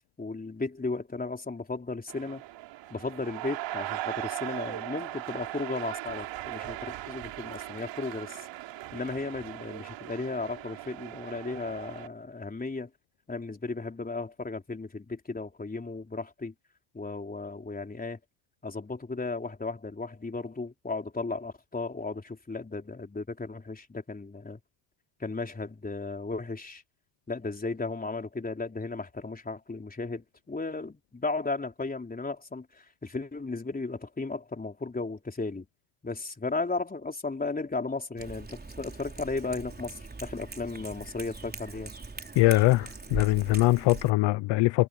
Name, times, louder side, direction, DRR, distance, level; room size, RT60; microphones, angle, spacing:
voice 1, 0.2-2.4 2.9-8.5 8.9-12.9 13.3-16.5 16.9-18.2 18.6-24.6 25.2-26.8 27.3-35.7 36.0-41.9, left 3 dB, 20° left, 4.1 m, -35 dB
sound 1, 2.1-12.1, right 15 dB, 70° right, 4.5 m, -39 dB
Cat, 38.2-44.1, right 3 dB, 20° right, 4.2 m, -41 dB
voice 2, 42.4-44.9, left 19 dB, 70° left, 1.0 m, -22 dB
supercardioid pair, 70°, 46 cm